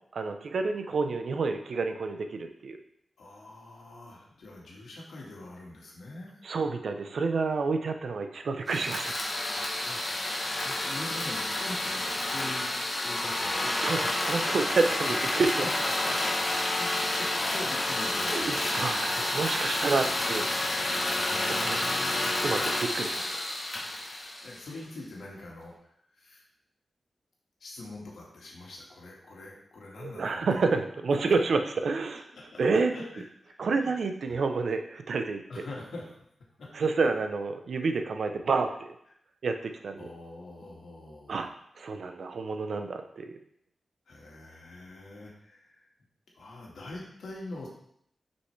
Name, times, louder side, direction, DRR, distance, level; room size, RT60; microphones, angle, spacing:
voice 1, 0.1-2.8 6.4-9.1 13.7-15.7 18.3-21.1 21.5-22.1 22.4-23.4 30.0-32.3 32.6-32.9 33.6-35.4 36.7-38.9 39.4-40.1 41.3-43.4, right 4 dB, 65° right, 6 dB, 0.6 m, -29 dB
voice 2, 3.2-6.4 9.8-10.4 10.6-12.7 13.0-14.1 15.0-16.2 16.5-18.7 21.2-22.3 23.9-26.4 27.6-30.5 31.3-31.4 32.3-32.6 32.9-34.0 34.3-34.4 35.5-36.0 36.6-36.7 40.0-41.4 44.1-45.8 46.3-47.7, left 2 dB, 90° left, -3 dB, 1.6 m, -44 dB
sound 1, 8.7-24.9, left 1 dB, 30° left, 0.9 m, -30 dB
6.4 x 5.4 x 3.2 m, 0.72 s
wide cardioid pair, 155°, 0 cm